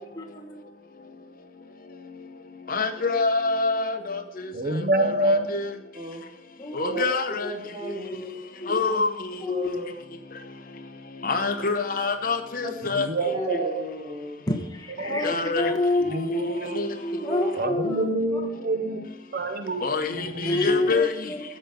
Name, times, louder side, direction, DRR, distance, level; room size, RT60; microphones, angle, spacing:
voice 1, 0.2-0.6 4.0-4.1 4.3-4.5 6.6-7.0 7.4-7.5 7.8-8.0 8.6-9.0 9.4-9.7 12.7-12.8 13.4-13.6 14.5-18.0 20.4-21.4, left 2 dB, 20° left, 1.2 m, -28 dB
voice 2, 2.7-4.2 5.5-5.7 6.8-7.5 8.7-9.1 11.2-13.1 15.2-15.7 16.8-16.9 19.8-21.1, left 4 dB, 50° left, 0.9 m, -25 dB
voice 3, 4.5-5.5 6.8-7.2 12.9-13.7 15.0-15.7 16.0-16.8 17.5-19.8 20.2-20.9, right 2 dB, 55° right, 0.8 m, -27 dB
voice 4, 5.9-6.3 7.4-8.4 9.5-9.9 12.6-12.7 13.3-14.4 15.0-15.4 17.2-17.5 17.8-18.1, equal, 35° right, 2.4 m, -35 dB
13.5 x 5.2 x 6.8 m
head